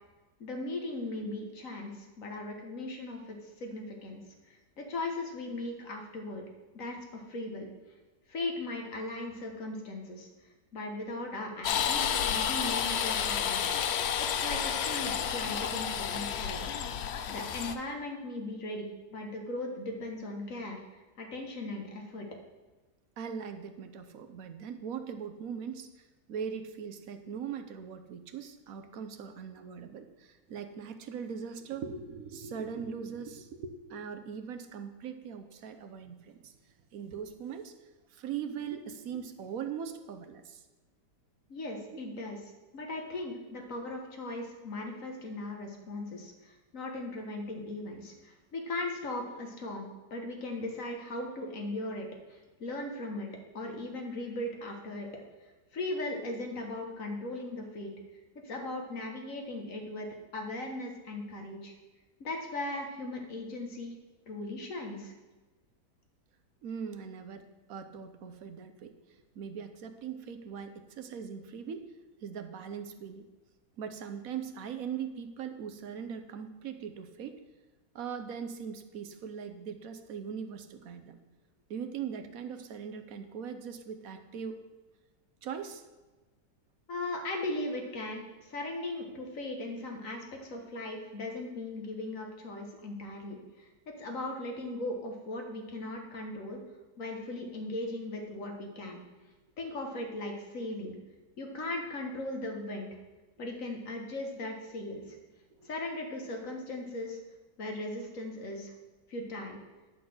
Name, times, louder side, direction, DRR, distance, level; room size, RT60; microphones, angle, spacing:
voice 1, 0.4-6.4 6.7-7.7 8.3-10.3 10.7-16.9 17.3-20.8 21.2-22.3 41.5-42.4 42.7-53.3 53.5-55.1 55.7-57.9 58.4-60.1 60.3-61.7 62.2-63.9 64.3-65.1 86.9-93.7 94.0-96.6 97.0-99.0 99.6-101.0 101.4-102.9 103.4-105.2 105.6-107.2 107.6-108.7 109.1-109.6, left 2 dB, 50° left, 2 dB, 1.8 m, -38 dB
sound 1, 11.6-17.8, left 8 dB, 85° left, 0.5 m, -31 dB
voice 2, 23.2-36.5 36.9-37.7 38.1-40.6 66.6-68.9 69.3-71.9 72.2-73.2 73.8-77.4 77.9-81.2 81.7-84.6 85.4-85.8 105.5-105.7, right 7 dB, 60° right, 7 dB, 1.1 m, -40 dB
11.0 x 4.2 x 7.7 m, 1.2 s
omnidirectional pair, 1.8 m